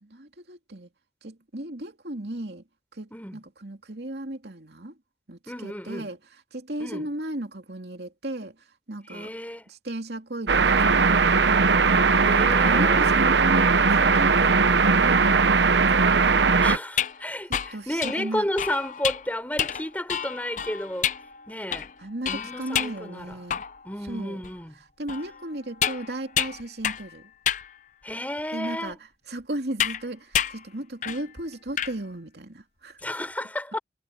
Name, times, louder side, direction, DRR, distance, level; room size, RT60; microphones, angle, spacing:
voice 1, 0.0-0.9 1.2-2.6 2.9-5.0 5.3-6.2 6.5-9.3 9.7-11.4 12.6-15.6 17.5-18.5 22.0-23.6 24.0-24.4 25.0-27.3 28.5-29.0 29.3-33.0, right 1 dB, 70° right, 2.8 m, -35 dB
voice 2, 5.5-6.1 6.8-7.1 9.1-9.7 12.2-13.2 16.6-21.1 21.5-21.9 22.2-23.4 23.8-24.7 28.0-28.9 33.0-33.8, left 1 dB, 10° left, 4.5 m, -32 dB
sound 1, 10.5-16.8, right 4 dB, 90° right, 0.9 m, -19 dB
sound 2, 16.8-24.0 24.4-24.5 25.1-27.1 27.5-27.7 28.4-28.5 29.8-30.0 30.3-30.6 31.0-31.3 31.5-31.9, left 9 dB, 45° left, 0.6 m, -29 dB
head